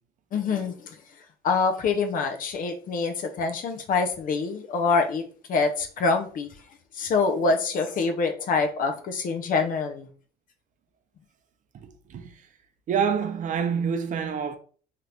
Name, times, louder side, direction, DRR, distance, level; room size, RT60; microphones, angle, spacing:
voice 1, 0.3-1.0 1.4-5.2 5.5-6.5 6.9-10.1, left 4 dB, 55° left, 0.6 m, -25 dB
voice 2, 11.7-12.3 12.9-14.6, right 7 dB, 50° right, 0.5 m, -27 dB
2.9 x 2.4 x 3.3 m
cardioid pair, 110°, 17 cm